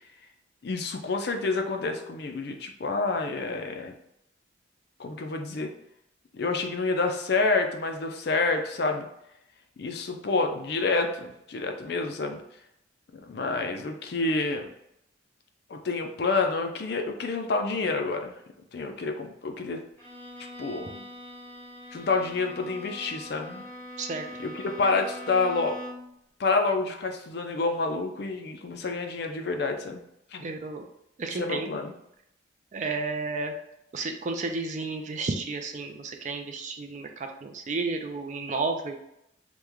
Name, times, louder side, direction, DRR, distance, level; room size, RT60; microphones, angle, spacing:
voice 1, 0.6-3.9 5.0-5.7 6.3-9.1 9.8-12.4 13.3-14.7 15.7-18.3 18.7-19.8 20.6-21.0 21.9-23.7 24.4-25.8 26.4-30.0 30.3-30.5 31.3-31.9, left 3 dB, 55° left, 4 dB, 0.4 m, -28 dB
Bowed string instrument, 20.0-26.2, left 1 dB, 10° left, 0.7 m, -42 dB
voice 2, 30.4-30.8 31.2-31.7 32.7-33.5 33.9-39.0, right 3 dB, 40° right, 4 dB, 0.3 m, -32 dB
3.0 x 2.1 x 3.5 m, 0.79 s
head